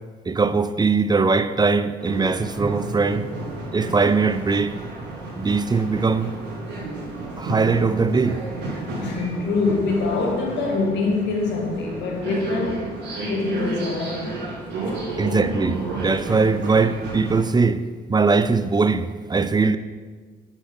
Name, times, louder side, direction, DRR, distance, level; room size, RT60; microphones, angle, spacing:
voice 1, 0.3-3.3 3.7-4.8 5.4-6.3 7.4-8.4 15.2-19.8, right 4 dB, 25° right, 0.7 m, -21 dB
sound 1, 2.0-17.4, right 2 dB, 75° right, 3.6 m, -32 dB
voice 2, 9.0-13.0 13.3-14.3, left 3 dB, 80° left, 2.3 m, -24 dB
9.7 x 6.6 x 6.1 m
cardioid pair, 80°, 18 cm